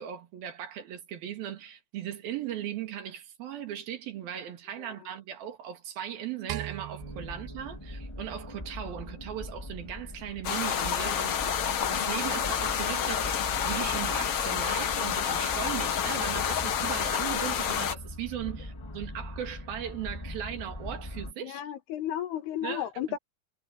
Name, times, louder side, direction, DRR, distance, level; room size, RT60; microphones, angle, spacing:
voice 1, 0.0-21.6 22.6-22.9, right 10 dB, 70° right, 3.8 m, -38 dB
sound 1, 6.5-8.9, right 14 dB, 85° right, 3.0 m, -41 dB
sound 2, 7.0-21.3, left 1 dB, 30° left, 0.5 m, -41 dB
sound 3, 10.4-17.9, left 8 dB, 60° left, 1.6 m, -29 dB
voice 2, 21.4-23.2, left 11 dB, 85° left, 3.8 m, -33 dB
omnidirectional pair, 4.5 m